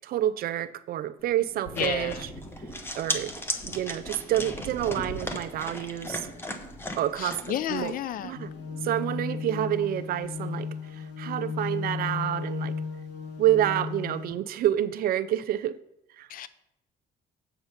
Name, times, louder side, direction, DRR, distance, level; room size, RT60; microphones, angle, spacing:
voice 1, 0.0-2.3 3.0-3.3 3.7-6.3 7.0-7.9 8.2-8.5 8.8-12.7 13.4-15.8 16.2-16.3, right 12 dB, 60° right, 13 dB, 0.5 m, -28 dB
Thunder, 1.2-11.0 11.3-12.4, equal, 35° left, 2.0 m, -45 dB
sound 1, 1.7-7.9, left 1 dB, 15° left, 0.9 m, -36 dB
voice 2, 1.8-2.2 7.2-8.4 16.3-16.5, left 11 dB, 55° left, 15 dB, 0.5 m, -32 dB
sound 2, 8.3-14.3, left 5 dB, 90° left, 1.1 m, -34 dB
8.1 x 5.0 x 5.7 m, 0.81 s
cardioid pair, 110°, 17 cm